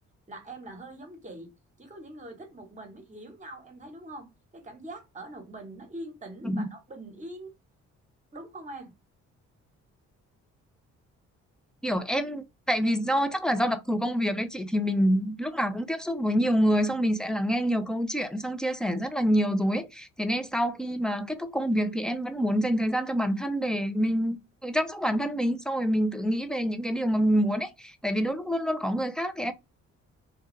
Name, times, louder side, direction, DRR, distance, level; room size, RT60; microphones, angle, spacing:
voice 1, 0.3-1.5 1.8-4.3 4.5-7.5 8.3-8.9, right 1 dB, 25° right, 1.0 m, -43 dB
voice 2, 11.8-24.4 24.6-29.5, equal, 5° left, 0.3 m, -27 dB
2.3 x 2.2 x 3.1 m
cardioid pair, 90°, 30 cm